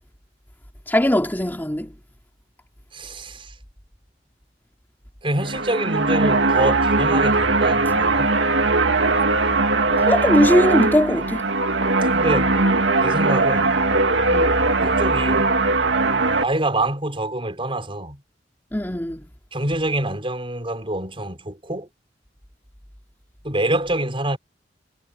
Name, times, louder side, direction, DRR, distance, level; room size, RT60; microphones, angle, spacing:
voice 1, 0.9-1.9 9.8-11.4 14.3-14.5 18.7-19.2, left 1 dB, 10° left, 2.8 m, -20 dB
voice 2, 2.9-3.5 5.2-8.3 12.1-12.6 13.0-13.8 14.8-15.5 16.4-18.2 19.5-21.9 23.4-24.4, right 1 dB, 30° right, 6.1 m, -26 dB
sound 1, 5.3-16.4, right 3 dB, 80° right, 2.4 m, -19 dB
head